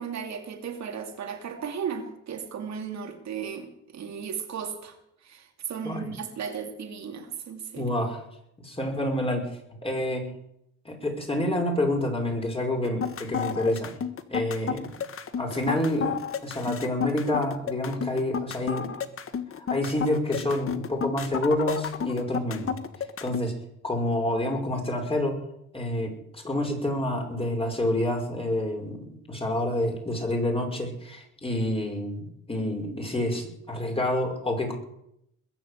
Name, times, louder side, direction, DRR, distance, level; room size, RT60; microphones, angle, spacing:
voice 1, 0.0-5.0 5.2-7.9, right 7 dB, 65° right, 4 dB, 2.7 m, -35 dB
voice 2, 7.8-8.2 8.6-9.5 9.8-10.3 10.9-13.9 14.3-14.9 15.4-16.2 16.4-18.9 19.6-22.8 23.2-23.5 23.8-25.4 25.7-34.7, left 1 dB, 20° left, 1 dB, 5.3 m, -28 dB
sound 1, 12.8-23.4, left 7 dB, 45° left, 1.5 m, -31 dB
21.5 x 7.5 x 8.2 m, 0.76 s
cardioid pair, 90°, 30 cm